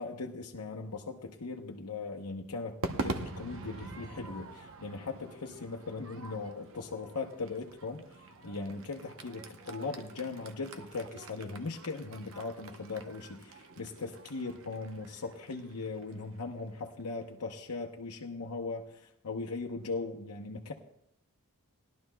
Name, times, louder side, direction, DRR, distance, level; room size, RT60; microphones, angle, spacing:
voice 1, 0.0-8.0 8.4-20.7, left 3 dB, 85° left, 0 dB, 0.9 m, -39 dB
Crowd / Fireworks, 2.8-17.2, right 2 dB, 60° right, 0.8 m, -44 dB
19.5 x 12.0 x 2.3 m, 0.77 s
head